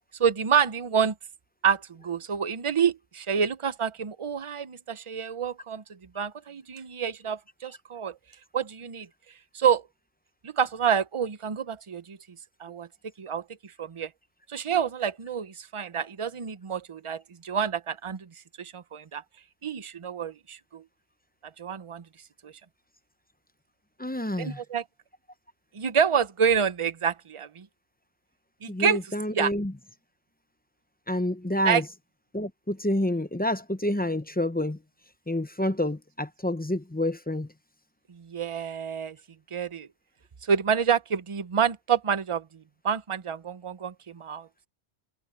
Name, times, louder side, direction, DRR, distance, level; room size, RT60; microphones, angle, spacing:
voice 1, 0.2-1.1 1.6-5.8 6.1-8.1 8.5-9.1 9.5-9.8 10.4-12.2 12.6-12.9 13.2-13.4 13.8-14.1 14.5-18.3 18.6-19.2 19.6-20.8 21.6-22.0 22.4-22.5 24.4-24.8 25.7-27.7 28.6-29.0 29.3-29.5 31.6-31.8 38.1-39.2 39.5-39.9 40.5-44.5, right 7 dB, 35° right, 0.7 m, -28 dB
voice 2, 24.0-24.6 28.7-29.7 31.1-31.8 32.3-34.8 35.3-37.5, left 1 dB, 10° left, 0.5 m, -28 dB
omnidirectional pair, 1.1 m